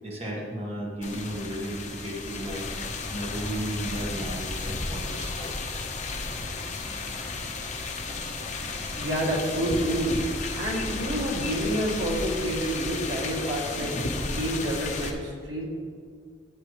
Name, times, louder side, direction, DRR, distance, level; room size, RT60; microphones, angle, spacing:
voice 1, 0.0-2.7 3.1-5.5, right 1 dB, 35° right, -3 dB, 1.7 m, -34 dB
sound 1, 1.0-15.1, left 3 dB, 40° left, 1.2 m, -33 dB
voice 2, 9.0-10.2 10.5-14.0 14.2-15.6, right 1 dB, 90° right, -4 dB, 2.6 m, -28 dB
13.0 x 8.4 x 3.2 m, 2.1 s
head